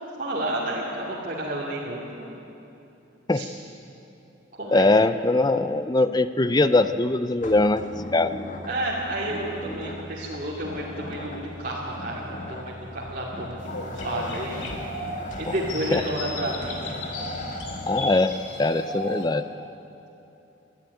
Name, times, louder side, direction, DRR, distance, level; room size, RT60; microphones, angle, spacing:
voice 1, 0.2-2.3 3.3-3.5 4.6-4.9 8.6-14.7 15.4-16.8, right 1 dB, 45° right, -6 dB, 2.5 m, -31 dB
voice 2, 4.7-8.3 15.5-15.6 15.9-16.0 17.9-18.3 18.6-19.4, left 2 dB, 20° left, 12 dB, 0.6 m, -21 dB
sound 1, 7.4-18.1, left 1 dB, 40° left, 1.9 m, -37 dB
sound 2, 13.6-19.3, left 1 dB, 70° left, 2.8 m, -36 dB
20.5 x 13.0 x 9.6 m, 2.9 s
head